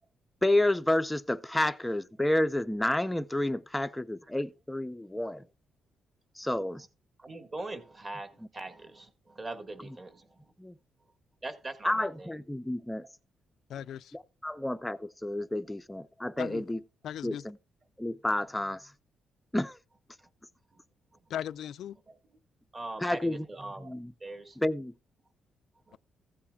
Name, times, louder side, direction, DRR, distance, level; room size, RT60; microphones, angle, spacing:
voice 1, 0.4-5.5 6.4-6.8 9.8-10.0 10.6-10.8 11.8-13.1 14.1-16.8 17.2-17.6 18.0-18.9 19.5-19.8 23.0-23.5 23.8-24.1 24.6-24.9, left 1 dB, 5° left, 0.5 m, -30 dB
voice 2, 7.2-10.4 11.4-12.3 20.2-20.3 20.7-20.8 22.1-22.2 22.7-23.9 24.2-24.6 25.9-26.0, right 2 dB, 25° right, 1.5 m, -42 dB
voice 3, 13.7-14.2 16.4-16.6 17.0-17.4 21.3-22.0, left 10 dB, 70° left, 0.4 m, -37 dB
16.0 x 8.5 x 2.3 m
cardioid pair, 160°, 0 cm